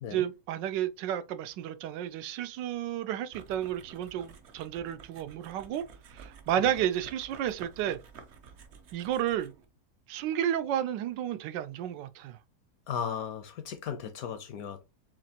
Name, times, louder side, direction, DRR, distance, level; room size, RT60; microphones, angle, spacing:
voice 1, 0.1-5.8 6.1-8.0 8.9-9.5 10.1-12.4, right 11 dB, 85° right, 1.2 m, -32 dB
sound 1, 3.3-9.6, right 6 dB, 60° right, 0.7 m, -51 dB
voice 2, 12.9-14.8, left 7 dB, 70° left, 0.9 m, -36 dB
7.3 x 2.5 x 2.8 m
omnidirectional pair, 1.9 m